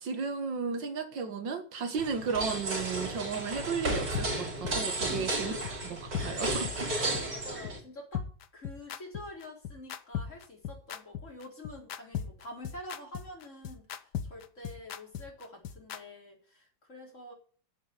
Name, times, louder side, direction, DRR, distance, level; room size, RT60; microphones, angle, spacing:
voice 1, 0.0-5.6 6.2-7.3, right 5 dB, 80° right, 2.1 m, -34 dB
sound 1, 2.0-7.8, right 2 dB, 65° right, 4.3 m, -33 dB
sound 2, 4.2-4.3 4.6-4.8 5.1-5.2 5.7-5.8 6.1-6.3 6.6-6.8 7.1-7.2 7.7-7.8 8.1-16.0, left 9 dB, 70° left, 1.4 m, -36 dB
voice 2, 5.0-5.9 7.1-8.3 8.5-17.3, left 1 dB, 40° left, 4.2 m, -47 dB
9.3 x 8.1 x 9.0 m
omnidirectional pair, 2.0 m